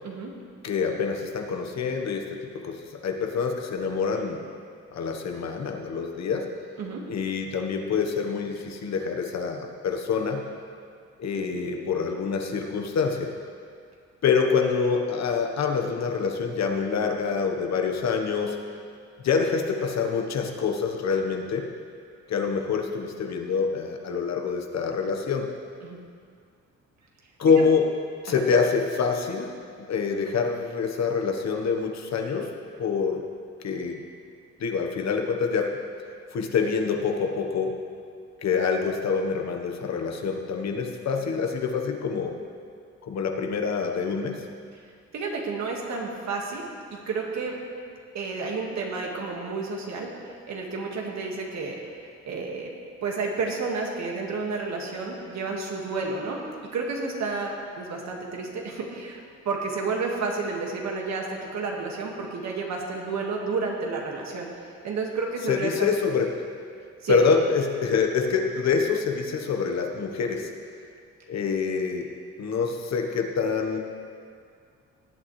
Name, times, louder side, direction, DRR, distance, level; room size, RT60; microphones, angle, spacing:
voice 1, 0.6-4.4 4.9-6.5 7.1-10.4 11.2-13.3 14.2-18.6 19.2-21.7 22.3-25.5 27.4-27.9 28.2-29.5 29.9-32.5 32.8-33.2 33.6-34.0 34.6-35.7 36.3-37.8 38.4-42.3 43.0-44.4 65.5-66.3 67.1-70.5 71.3-72.1 72.4-73.8, left 5 dB, 60° left, 3 dB, 1.3 m, -26 dB
voice 2, 45.1-46.6 47.1-47.6 48.1-52.7 53.0-56.4 56.7-64.5 64.8-65.9 67.0-67.2, right 4 dB, 65° right, 0 dB, 1.9 m, -31 dB
18.0 x 8.6 x 3.3 m, 2.2 s
cardioid pair, 90°, 30 cm